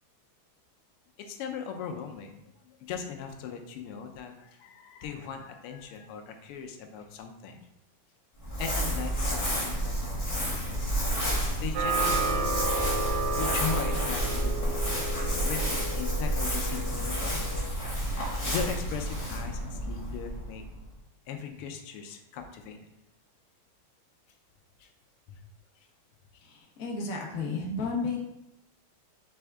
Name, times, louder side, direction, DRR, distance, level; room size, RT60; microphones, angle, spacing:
voice 1, 1.2-2.5 2.9-7.7 8.6-10.7 11.5-12.5 13.4-15.0 15.4-17.4 18.4-20.6 21.3-22.8 24.8-24.9 25.3-25.4, left 6 dB, 85° left, 4 dB, 1.6 m, -38 dB
Crumpling crinkling, 8.4-20.8, equal, 25° left, 0.7 m, -30 dB
sound 1, 11.7-17.7, right 3 dB, 85° right, 1.5 m, -33 dB
voice 2, 26.8-28.2, left 3 dB, 55° left, -1 dB, 1.0 m, -31 dB
4.6 x 3.4 x 3.3 m, 0.84 s
omnidirectional pair, 2.4 m